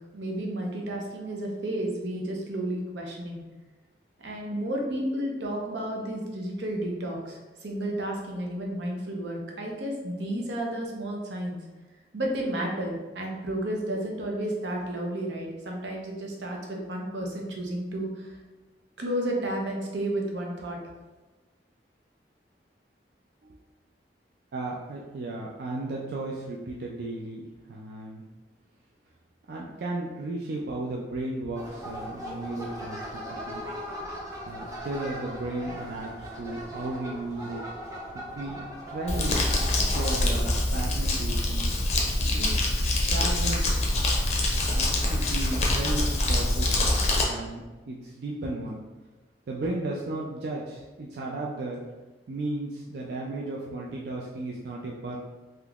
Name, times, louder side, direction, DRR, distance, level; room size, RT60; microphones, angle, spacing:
voice 1, 0.1-3.4 4.2-11.6 12.1-18.4 19.0-20.8, right 1 dB, 90° right, 0 dB, 0.7 m, -32 dB
voice 2, 24.5-28.2 29.5-33.6 34.4-37.6 38.1-39.4 39.9-41.9 42.2-42.8 43.1-43.8 44.7-48.8 49.5-51.8 52.3-55.2, right 2 dB, 65° right, -2 dB, 0.4 m, -35 dB
sound 1, 31.6-40.6, equal, 20° right, 0.6 m, -39 dB
Crumpling crinkling, 39.1-47.2, left 1 dB, 35° left, 0.5 m, -25 dB
3.5 x 2.8 x 2.3 m, 1.2 s
head